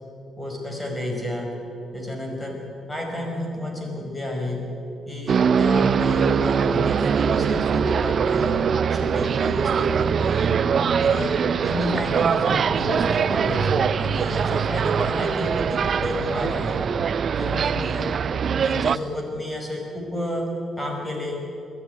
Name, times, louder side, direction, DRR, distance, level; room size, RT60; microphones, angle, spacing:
voice 1, 0.4-1.5 1.9-2.6 2.9-4.7 5.1-10.6 11.0-16.8 17.4-21.4, left 1 dB, 15° left, 1 dB, 5.7 m, -30 dB
sound 1, 5.3-19.0, right 7 dB, 50° right, 0.5 m, -22 dB
21.5 x 13.5 x 9.5 m, 2.7 s
cardioid pair, 90°, 0 cm